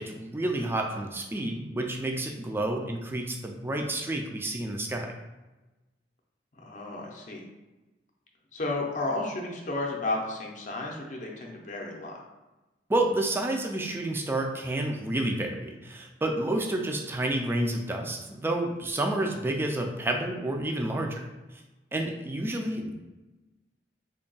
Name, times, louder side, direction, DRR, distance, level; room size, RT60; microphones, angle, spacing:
voice 1, 0.0-5.1 12.9-21.3 21.9-22.9, right 1 dB, 15° right, 2 dB, 0.3 m, -29 dB
voice 2, 6.6-7.4 8.5-12.2, left 2 dB, 45° left, 0 dB, 0.6 m, -33 dB
3.4 x 2.2 x 3.9 m, 1.1 s
head